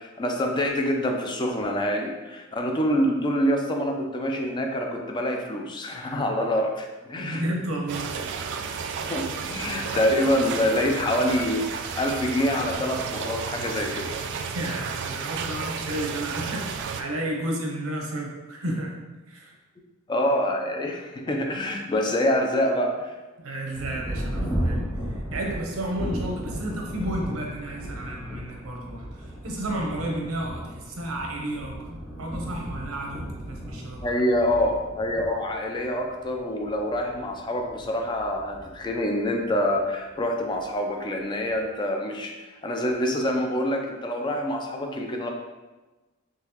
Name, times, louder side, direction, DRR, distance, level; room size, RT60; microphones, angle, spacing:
voice 1, 0.0-7.4 9.1-14.1 20.1-23.1 34.0-42.3 42.6-45.3, left 1 dB, 20° left, 2 dB, 0.4 m, -26 dB
voice 2, 7.2-8.3 14.5-19.0 19.3-19.5 23.4-31.7 32.2-34.1, right 1 dB, 85° right, 0 dB, 0.8 m, -32 dB
sound 1, 7.9-17.0, right 6 dB, 60° right, 0.3 m, -32 dB
Thunder, 23.7-39.8 40.6-40.7 41.2-41.6, equal, 5° left, 0.8 m, -35 dB
3.8 x 3.0 x 2.9 m, 1.2 s
head